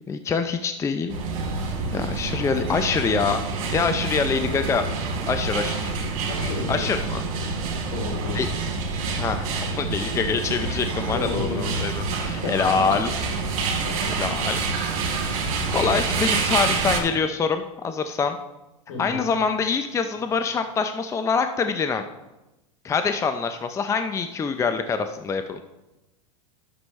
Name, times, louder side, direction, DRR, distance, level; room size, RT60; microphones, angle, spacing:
voice 1, 0.1-1.2 1.9-3.4 3.7-4.8 5.3-5.9 6.7-7.2 8.3-8.5 9.2-9.5 9.8-13.1 14.2-14.6 15.1-18.4 19.0-22.0 22.8-25.6, left 5 dB, 15° left, 8 dB, 0.5 m, -25 dB
sound 1, 1.1-17.0, right 4 dB, 65° right, 2.7 m, -27 dB
voice 2, 6.3-7.1 7.6-8.6 11.1-11.9 12.2-13.0 13.8-14.3 18.9-19.3, left 3 dB, 75° left, 0 dB, 3.3 m, -33 dB
11.5 x 7.0 x 3.2 m, 0.98 s
hypercardioid pair, 110°, 18 cm